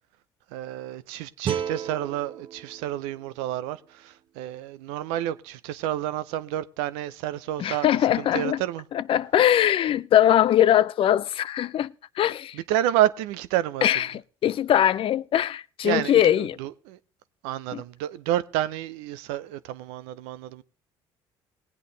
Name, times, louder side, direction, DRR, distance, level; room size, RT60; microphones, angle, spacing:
voice 1, 0.5-8.8 12.5-13.9 15.8-17.0 17.4-20.6, right 13 dB, 85° right, 0.6 m, -29 dB
sound 1, 1.4-4.5, right 8 dB, 50° right, 0.9 m, -35 dB
voice 2, 7.6-8.6 8.9-12.5 13.8-16.6 17.7-17.8, left 11 dB, 55° left, 0.5 m, -21 dB
19.0 x 8.4 x 3.9 m
supercardioid pair, 70°, 11 cm